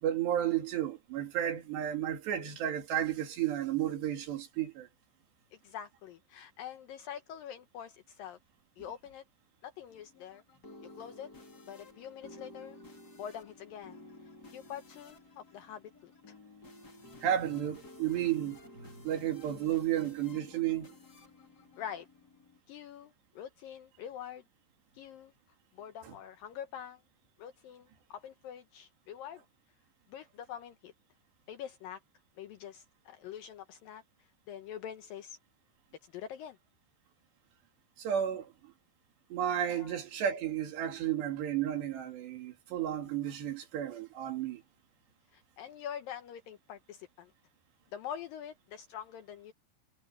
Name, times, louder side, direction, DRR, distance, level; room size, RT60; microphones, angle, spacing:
voice 1, 0.0-4.9 17.2-20.9 26.0-26.1 38.0-38.7 39.3-44.6, right 10 dB, 75° right, 4.7 m, -33 dB
voice 2, 5.5-8.4 8.8-9.2 9.6-10.4 11.0-11.3 11.7-12.8 13.2-14.0 14.5-16.3 21.8-22.1 22.7-24.4 24.9-25.3 25.7-27.0 27.4-29.4 30.1-30.9 31.5-32.0 32.4-34.0 34.5-35.4 36.0-36.6 39.8-40.0 45.3-47.3 47.9-49.5, left 9 dB, 75° left, 2.2 m, -45 dB
sound 1, 9.9-22.6, left 2 dB, 25° left, 3.1 m, -54 dB
omnidirectional pair, 5.0 m